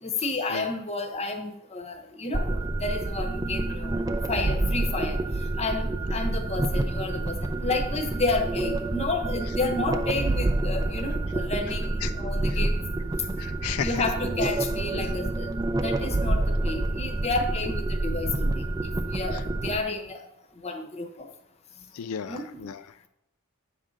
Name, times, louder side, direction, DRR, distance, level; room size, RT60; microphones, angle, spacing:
voice 1, 0.0-3.9 4.3-5.2 5.6-12.8 13.8-15.5 15.8-20.2 20.6-21.3 22.2-22.7, left 3 dB, 30° left, 5 dB, 0.9 m, -31 dB
sound 1, 2.3-19.8, right 2 dB, 15° right, 0.4 m, -28 dB
voice 2, 13.4-13.9 14.9-15.1 21.9-22.8, left 8 dB, 85° left, 11 dB, 0.4 m, -33 dB
8.4 x 3.7 x 6.3 m, 0.76 s
head